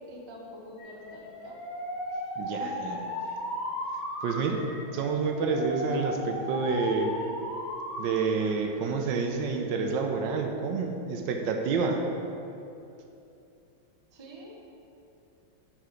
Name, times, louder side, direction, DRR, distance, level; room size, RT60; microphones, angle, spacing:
voice 1, 0.1-1.6 2.1-2.2 2.5-2.7 3.2-3.4 14.1-14.7, equal, 35° right, -2 dB, 0.4 m, -46 dB
Alarm, 0.8-8.0 8.4-9.0, left 1 dB, 70° left, 2.1 m, -36 dB
voice 2, 2.4-3.1 4.2-4.7 4.9-7.2 8.0-12.0, right 4 dB, 75° right, 4 dB, 1.3 m, -28 dB
6.3 x 4.9 x 5.7 m, 2.7 s
omnidirectional pair, 2.1 m